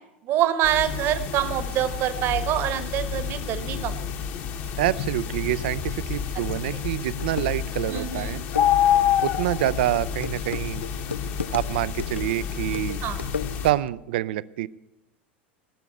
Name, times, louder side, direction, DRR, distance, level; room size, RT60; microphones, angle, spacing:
voice 1, 0.2-4.1 7.9-8.4 13.0-13.3, right 12 dB, 40° right, 12 dB, 1.1 m, -26 dB
sound 1, 0.6-13.7, left 8 dB, 40° left, 1.3 m, -28 dB
voice 2, 4.8-8.4 9.2-10.8 11.5-13.0 13.6-14.7, right 14 dB, 55° right, 19 dB, 0.5 m, -27 dB
sound 2, 6.8-6.9 7.2-13.9, left 5 dB, 80° left, 0.4 m, -36 dB
17.5 x 6.9 x 8.5 m, 0.93 s
figure-of-eight pair, 85°, 6 cm